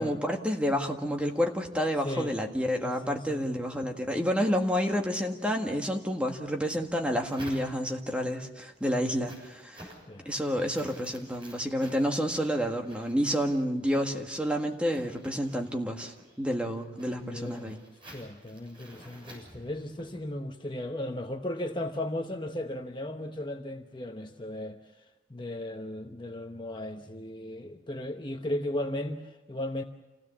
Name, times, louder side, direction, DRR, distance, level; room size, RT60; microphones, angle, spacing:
voice 1, 0.0-9.9 10.3-17.8, equal, 5° right, 1.7 m, -29 dB
voice 2, 2.0-2.4 2.8-3.5 10.1-10.3 17.2-17.7 18.1-24.8 25.3-29.8, left 1 dB, 25° left, 1.0 m, -36 dB
sound 1, 6.7-8.1 8.6-20.2, right 1 dB, 30° right, 7.4 m, -52 dB
28.0 x 16.5 x 7.3 m
head